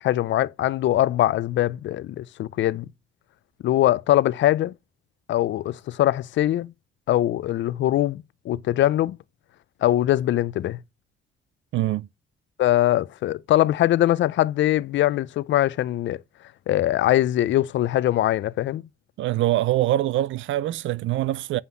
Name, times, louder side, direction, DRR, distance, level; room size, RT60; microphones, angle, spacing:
voice 1, 0.0-2.9 3.6-4.7 5.3-6.7 7.1-9.2 9.8-10.8 12.6-16.2 16.7-18.8, left 13 dB, 70° left, 0.5 m, -22 dB
voice 2, 11.7-12.1 19.2-21.6, right 14 dB, 75° right, 0.5 m, -24 dB
7.9 x 5.7 x 5.4 m
cardioid pair, 90°, 20 cm